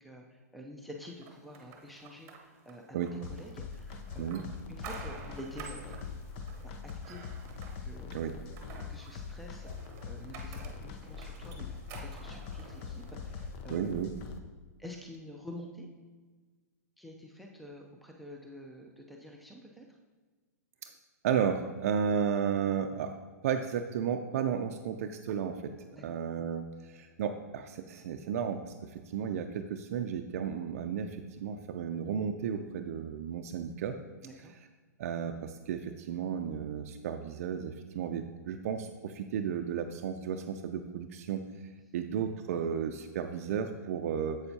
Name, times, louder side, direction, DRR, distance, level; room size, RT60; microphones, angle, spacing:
voice 1, 0.0-4.3 4.7-6.0 6.8-7.2 7.8-8.2 8.9-13.9 14.8-15.9 17.0-19.9 25.9-26.0 34.2-34.5, left 1 dB, ahead, 1 dB, 0.6 m, -48 dB
sound 1, 1.2-13.5, right 5 dB, 30° right, 1.0 m, -51 dB
sound 2, 3.2-14.4, left 5 dB, 45° left, 0.7 m, -43 dB
voice 2, 13.7-14.1 20.8-20.9 21.2-23.2 23.4-34.0 35.0-44.4, right 7 dB, 60° right, 5 dB, 0.5 m, -33 dB
7.9 x 6.7 x 2.8 m, 1.4 s
hypercardioid pair, 125°, 9 cm